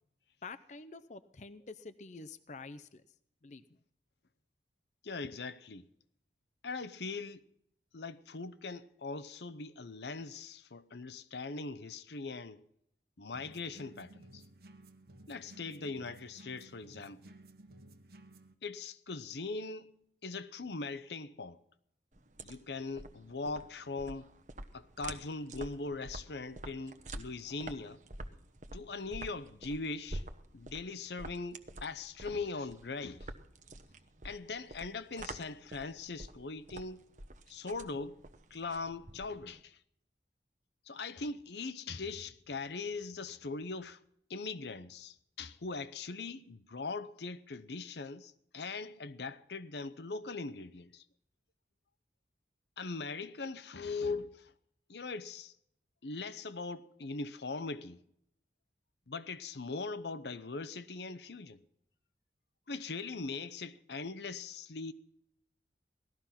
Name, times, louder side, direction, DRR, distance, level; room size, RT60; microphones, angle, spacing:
voice 1, 0.4-3.0 3.4-3.6, left 3 dB, 40° left, 0.6 m, -48 dB
voice 2, 5.0-5.9 6.6-7.5 7.9-12.6 13.2-14.4 15.3-17.2 18.6-21.6 22.4-24.3 24.7-28.0 28.7-30.2 30.5-33.3 34.2-37.1 37.5-38.2 38.5-39.8 40.9-44.0 44.3-51.0 52.8-54.5 54.9-55.5 56.0-58.0 59.1-61.6 62.7-64.9, left 3 dB, 75° left, 0.8 m, -41 dB
sound 1, 13.3-18.5, right 2 dB, 60° right, 1.3 m, -56 dB
sound 2, 22.1-39.6, right 2 dB, 45° right, 1.0 m, -47 dB
18.0 x 13.5 x 5.8 m
head